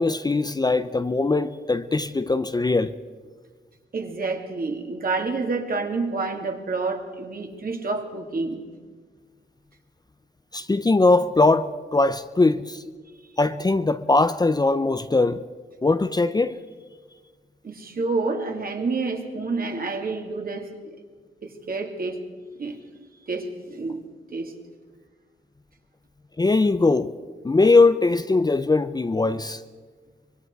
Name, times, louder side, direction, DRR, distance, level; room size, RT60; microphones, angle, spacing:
voice 1, 0.0-2.9 10.5-12.8 13.4-15.4 15.8-16.6 26.4-27.1 27.4-29.6, left 3 dB, 20° left, 0.7 m, -21 dB
voice 2, 3.9-8.7 17.6-21.0 21.4-22.2 22.6-22.8 23.3-24.0 24.3-24.5, right 3 dB, 50° right, 2.9 m, -28 dB
25.0 x 22.0 x 4.8 m
cardioid pair, 100°, 19 cm